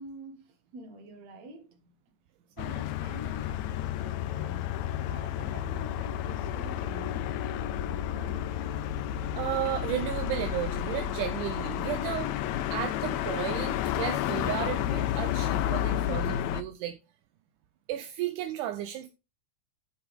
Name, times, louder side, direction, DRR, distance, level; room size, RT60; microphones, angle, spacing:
voice 1, 0.0-2.1 2.6-4.7 5.0-8.3, right 2 dB, 60° right, 2.8 m, -47 dB
sound 1, 2.6-16.6, left 11 dB, 80° left, 1.8 m, -31 dB
voice 2, 9.4-12.3 12.7-17.0 17.9-19.1, right 12 dB, 80° right, 2.2 m, -33 dB
10.0 x 7.1 x 3.5 m
omnidirectional pair, 3.6 m